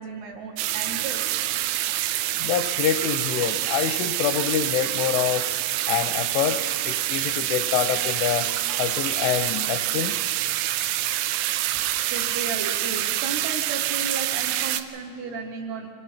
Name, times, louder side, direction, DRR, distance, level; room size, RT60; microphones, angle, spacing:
voice 1, 0.0-1.6 12.1-15.9, right 4 dB, 70° right, 3 dB, 2.6 m, -34 dB
sound 1, 0.6-14.8, right 14 dB, 90° right, 3.2 m, -26 dB
voice 2, 2.4-5.5 5.9-8.5 8.8-10.1, left 10 dB, 85° left, 10 dB, 3.1 m, -26 dB
25.0 x 18.5 x 5.8 m, 2.2 s
omnidirectional pair, 5.5 m